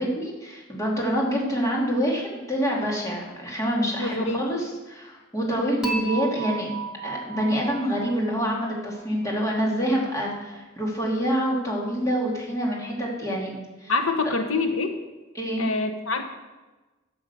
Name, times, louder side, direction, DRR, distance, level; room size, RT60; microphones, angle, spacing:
voice 1, 0.0-6.7 7.0-13.9 15.3-15.6, equal, 15° left, -3 dB, 2.7 m, -26 dB
voice 2, 4.0-4.5 13.9-15.0 15.6-16.2, left 3 dB, 85° left, 6 dB, 1.2 m, -25 dB
Dishes pots and pans / Chink clink, 5.8-9.0, right 4 dB, 5° right, 1.4 m, -34 dB
11.5 x 7.1 x 7.0 m, 1.2 s
head